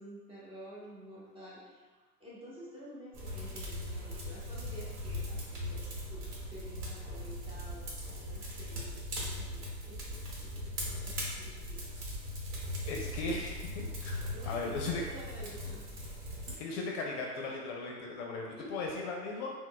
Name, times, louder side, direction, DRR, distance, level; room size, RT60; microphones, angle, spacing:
voice 1, 0.0-6.2 6.5-11.9 14.3-15.8 18.6-18.8, equal, 10° right, -8 dB, 0.8 m, -50 dB
sound 1, 3.1-16.5, left 1 dB, 55° right, 1.0 m, -39 dB
voice 2, 12.9-15.0 16.6-19.5, left 3 dB, 50° left, 0 dB, 0.5 m, -37 dB
4.0 x 2.1 x 2.2 m, 1.3 s
hypercardioid pair, 105°, 47 cm